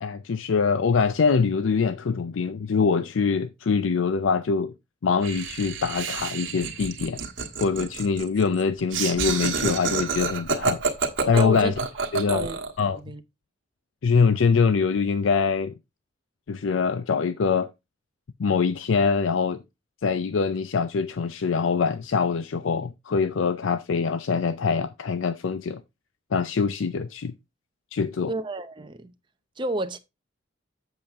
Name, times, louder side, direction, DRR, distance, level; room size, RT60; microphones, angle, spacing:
voice 1, 0.0-4.7 5.0-7.2 7.6-10.8 11.3-11.7 12.1-12.5 12.8-13.0 14.0-15.7 16.5-17.7 18.4-19.6 20.0-25.8 26.3-27.3 27.9-28.3, left 5 dB, 75° left, 0.5 m, -24 dB
Laughter, 5.2-12.8, right 5 dB, 65° right, 1.4 m, -29 dB
voice 2, 11.3-11.7 12.3-12.6 12.9-13.2 28.3-29.1 29.6-30.0, right 2 dB, 25° right, 0.7 m, -31 dB
7.7 x 7.1 x 3.5 m
head